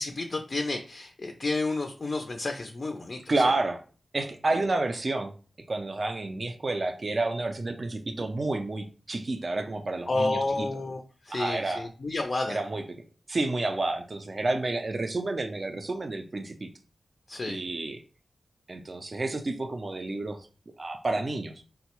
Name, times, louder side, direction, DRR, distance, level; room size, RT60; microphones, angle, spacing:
voice 1, 0.0-3.2 10.1-12.6 17.3-17.6, left 2 dB, 40° left, 4 dB, 0.3 m, -30 dB
voice 2, 3.3-3.8 4.1-5.3 5.7-10.7 11.3-11.9 12.5-12.8 13.3-16.7 17.5-18.0 18.7-20.5 20.8-21.6, right 2 dB, 40° right, 6 dB, 0.3 m, -30 dB
4.4 x 2.0 x 2.9 m, 0.37 s
wide cardioid pair, 135°, 0 cm